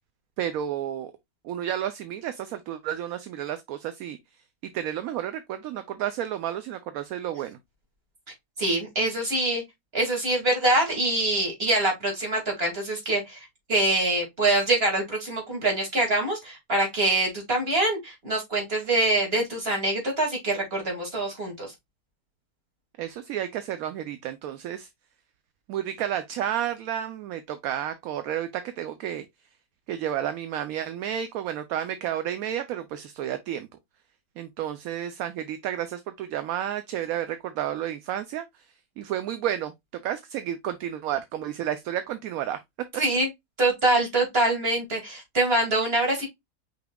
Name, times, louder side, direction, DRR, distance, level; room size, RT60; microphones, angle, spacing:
voice 1, 0.4-1.1 1.4-4.2 4.6-7.6 23.0-24.9 25.7-29.3 29.9-33.7 34.4-42.6, right 10 dB, 70° right, 1.0 m, -31 dB
voice 2, 8.6-9.6 9.9-21.7 43.0-43.3 43.6-46.3, right 2 dB, 35° right, 2.5 m, -24 dB
5.6 x 4.1 x 2.2 m
omnidirectional pair, 1.7 m